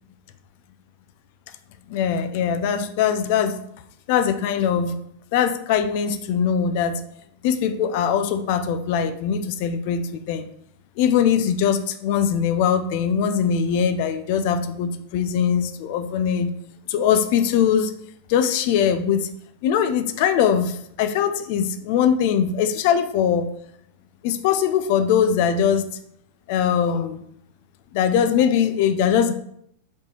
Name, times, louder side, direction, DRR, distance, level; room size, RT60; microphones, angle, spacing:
voice 1, 1.9-3.6 4.1-5.0 5.3-7.0 7.4-10.4 11.0-16.5 16.9-17.9 18.3-19.3 19.6-20.7 21.0-23.5 24.2-25.8 26.5-27.2 27.9-29.4, left 8 dB, 50° left, 10 dB, 0.6 m, -21 dB
5.2 x 4.6 x 4.6 m, 0.70 s
figure-of-eight pair, 90°, 0 cm